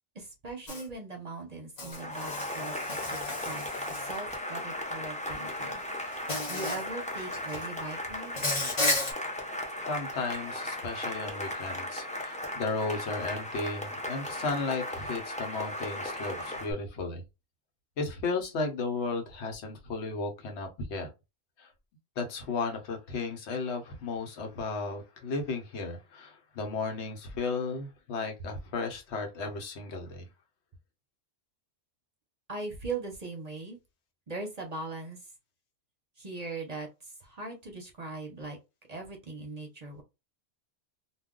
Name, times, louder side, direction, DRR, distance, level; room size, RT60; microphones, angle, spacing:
voice 1, 0.1-2.7 3.1-5.8 6.5-8.4 32.5-33.8 34.3-35.3 36.2-38.6 38.9-40.0, right 3 dB, 40° right, 0.7 m, -40 dB
Insect, 0.7-0.8 1.8-4.3 5.5-5.6 6.3-6.8 7.2-7.7 8.4-9.1, left 2 dB, 40° left, 0.9 m, -33 dB
Cheering / Applause, 1.9-16.7, left 1 dB, 10° left, 0.4 m, -37 dB
voice 2, 9.9-17.2 18.0-21.1 21.6-21.7 22.2-30.3, left 3 dB, 75° left, 1.0 m, -34 dB
2.3 x 2.2 x 3.6 m
omnidirectional pair, 1.1 m